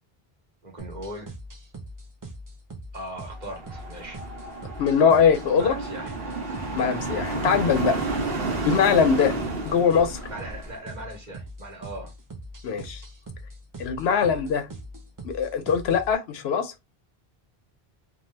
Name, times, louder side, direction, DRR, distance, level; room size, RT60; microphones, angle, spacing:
voice 1, 0.6-1.3 2.9-4.2 5.6-6.1 10.3-12.1 14.0-14.3, right 1 dB, 45° right, 1.1 m, -39 dB
sound 1, 0.8-16.1, right 1 dB, 30° right, 0.4 m, -41 dB
sound 2, 3.3-10.8, right 2 dB, 70° right, 1.1 m, -31 dB
voice 2, 4.8-5.7 6.8-8.0 8.5-9.4 9.6-10.2 12.6-13.0 13.8-14.6 15.2-16.7, left 6 dB, 85° left, 0.9 m, -22 dB
2.7 x 2.3 x 3.1 m
omnidirectional pair, 1.0 m